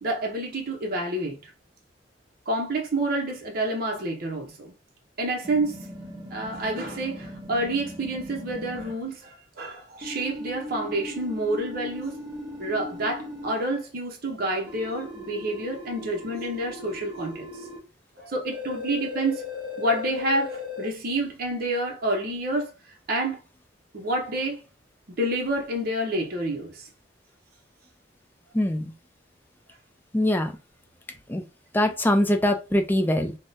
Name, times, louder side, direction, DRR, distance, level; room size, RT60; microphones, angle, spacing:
voice 1, 0.0-1.5 2.5-4.7 5.2-5.8 6.3-12.2 12.6-17.5 18.2-19.4 19.8-22.7 23.1-23.4 23.9-24.6 25.1-26.9, right 1 dB, 55° right, 0.7 m, -28 dB
sound 1, 5.4-8.9 10.0-13.5 14.7-17.8 18.5-20.9, left 2 dB, 25° right, 0.8 m, -38 dB
voice 2, 28.5-28.9 30.1-30.6 31.3-31.4 31.7-33.4, left 1 dB, 10° left, 0.4 m, -23 dB
3.5 x 2.1 x 2.6 m
head